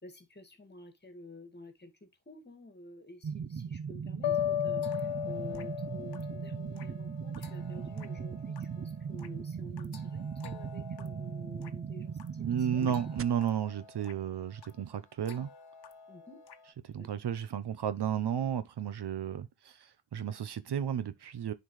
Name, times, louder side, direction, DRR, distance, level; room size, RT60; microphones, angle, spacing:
voice 1, 0.0-13.0 16.1-16.4 16.9-17.1, left 1 dB, 20° left, 2.1 m, -51 dB
sound 1, 3.2-13.2, right 6 dB, 30° right, 0.5 m, -38 dB
sound 2, 4.2-7.3, left 12 dB, 75° left, 0.7 m, -34 dB
sound 3, 4.8-16.7, left 5 dB, 60° left, 1.1 m, -54 dB
voice 2, 12.4-15.5 16.8-21.5, right 9 dB, 60° right, 0.8 m, -33 dB
10.0 x 4.7 x 3.2 m
cardioid pair, 80°, 45 cm